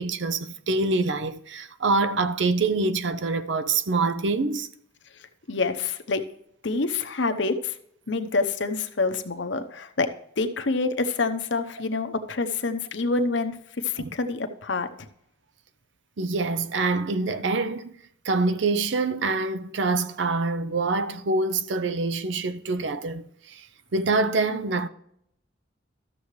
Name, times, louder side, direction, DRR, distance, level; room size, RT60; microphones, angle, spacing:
voice 1, 0.0-4.7 14.0-14.1 16.2-17.9 18.2-23.7 23.9-24.9, right 3 dB, 70° right, 0.6 m, -25 dB
voice 2, 5.5-6.2 6.6-7.7 8.1-10.1 10.4-13.6 13.8-15.1, left 3 dB, 70° left, 0.9 m, -27 dB
13.0 x 7.0 x 3.2 m
head